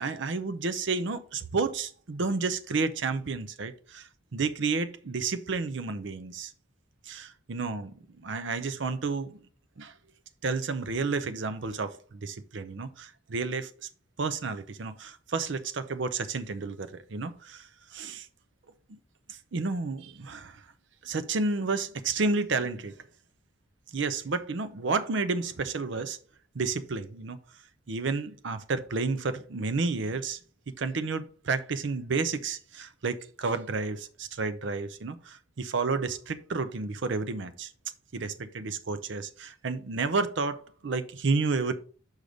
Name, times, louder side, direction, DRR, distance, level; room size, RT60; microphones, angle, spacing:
voice 1, 0.0-6.5 7.1-9.4 9.8-9.9 10.4-13.7 14.2-17.7 17.9-18.3 19.3-20.6 21.0-22.9 23.9-26.2 26.5-27.4 27.9-30.4 30.8-37.7 38.1-41.7, right 4 dB, 60° right, 0.5 m, -31 dB
6.4 x 5.0 x 4.0 m
head